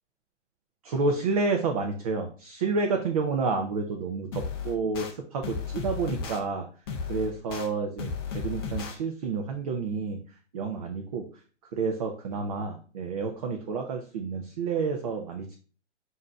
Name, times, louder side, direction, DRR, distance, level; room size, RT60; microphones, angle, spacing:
voice 1, 0.8-6.7 7.1-10.2 10.5-11.3 11.7-15.5, right 4 dB, 30° right, 3 dB, 0.5 m, -29 dB
sound 1, 4.3-5.1 5.4-6.4 6.9-7.7 8.0-8.9, left 5 dB, 20° left, 0.5 m, -34 dB
7.0 x 2.7 x 2.3 m, 0.40 s
figure-of-eight pair, 130°, 36 cm